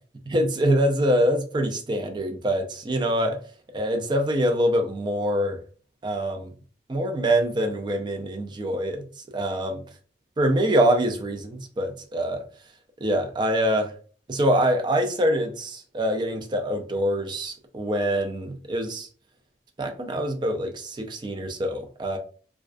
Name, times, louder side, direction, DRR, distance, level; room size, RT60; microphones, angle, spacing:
voice 1, 0.3-3.4 3.7-5.6 6.0-6.5 6.9-9.8 10.4-12.4 13.0-13.9 14.3-19.1 19.8-22.2, equal, 25° right, 0.3 m, -24 dB
2.3 x 2.2 x 2.4 m
head